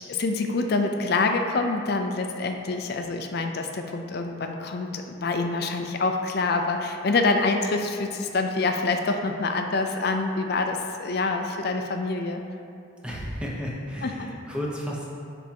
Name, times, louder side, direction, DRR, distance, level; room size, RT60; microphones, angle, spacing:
voice 1, 0.1-12.4 14.0-14.3, left 3 dB, 50° left, 4 dB, 0.5 m, -26 dB
voice 2, 13.0-15.0, equal, 5° right, -4 dB, 0.8 m, -32 dB
10.0 x 3.5 x 2.9 m, 2.5 s
head